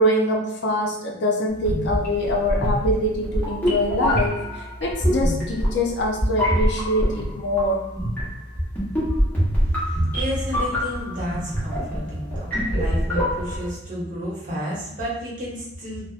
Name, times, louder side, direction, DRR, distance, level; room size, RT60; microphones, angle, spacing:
voice 1, 0.0-7.9, equal, 65° left, 0 dB, 0.5 m, -24 dB
sound 1, 1.6-13.7, equal, 10° left, 0.8 m, -25 dB
voice 2, 9.6-16.1, equal, 45° right, -7 dB, 0.9 m, -30 dB
2.5 x 2.1 x 2.4 m, 0.78 s
head